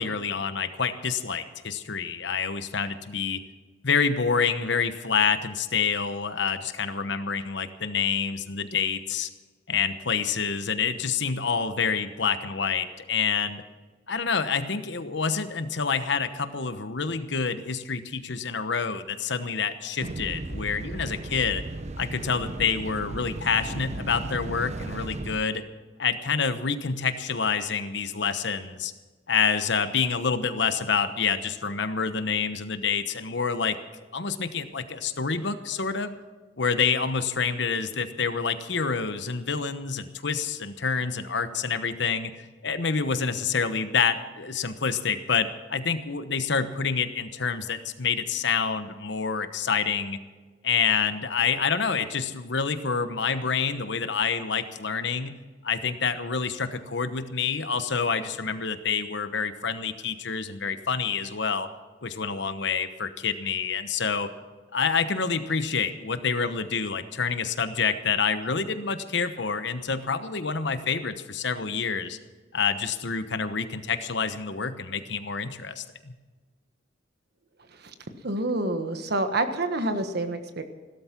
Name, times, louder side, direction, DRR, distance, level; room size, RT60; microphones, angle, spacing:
voice 1, 0.0-3.4 3.8-9.3 9.7-13.6 14.1-21.6 22.0-25.6 26.0-28.9 29.3-33.8 34.1-36.1 36.6-42.3 42.6-50.2 50.6-55.3 55.6-61.7 62.0-64.3 64.7-72.2 72.5-76.1, left 5 dB, 65° left, 10 dB, 1.1 m, -27 dB
sound 1, 20.0-25.4, right 2 dB, 40° right, 0.7 m, -35 dB
voice 2, 78.2-80.6, right 2 dB, 60° right, 8 dB, 1.4 m, -27 dB
16.5 x 13.0 x 6.0 m, 1.3 s
head